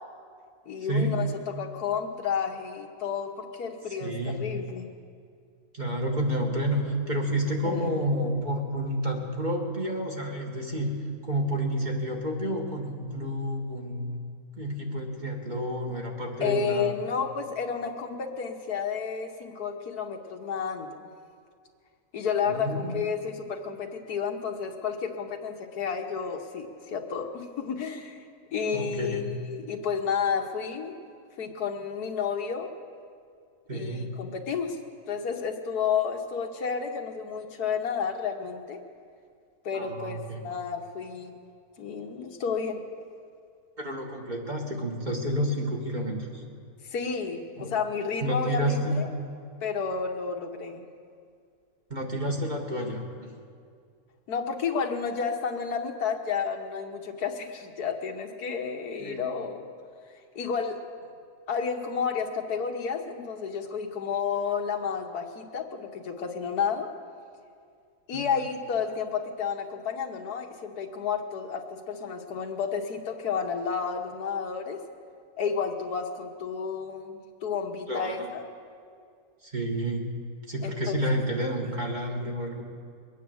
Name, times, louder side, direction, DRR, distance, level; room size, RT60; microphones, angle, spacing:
voice 1, 0.7-1.3 1.6-4.9 7.7-8.0 16.4-21.1 22.1-28.2 28.5-31.0 31.4-32.7 33.7-34.8 35.1-38.8 39.7-41.3 41.8-42.8 46.8-49.1 49.6-50.8 54.3-59.7 60.4-60.8 61.5-66.9 68.1-74.8 75.4-78.4 80.6-81.0 81.6-81.8, left 6 dB, 90° left, 3 dB, 1.7 m, -31 dB
voice 2, 3.9-4.5 5.7-10.9 11.2-14.2 14.6-16.9 22.5-22.9 28.7-29.4 33.7-34.2 39.7-40.4 43.8-46.4 47.6-47.7 48.2-49.0 51.9-53.3 59.0-59.3 68.1-68.4 77.9-78.3 79.4-80.1 80.5-82.6, equal, 30° right, 0 dB, 1.8 m, -30 dB
22.5 x 9.3 x 7.0 m, 2.2 s
omnidirectional pair, 1.6 m